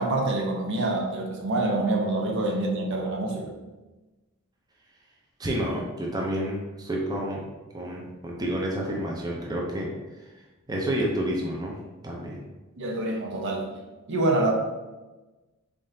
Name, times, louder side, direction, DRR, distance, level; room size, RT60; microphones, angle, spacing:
voice 1, 0.0-3.5 12.8-13.7 14.1-14.5, right 2 dB, 60° right, 1 dB, 0.6 m, -26 dB
voice 2, 5.4-7.4 7.7-9.9 10.7-11.8 12.0-12.4, right 1 dB, 20° right, -2 dB, 0.5 m, -29 dB
3.7 x 3.6 x 2.7 m, 1.1 s
head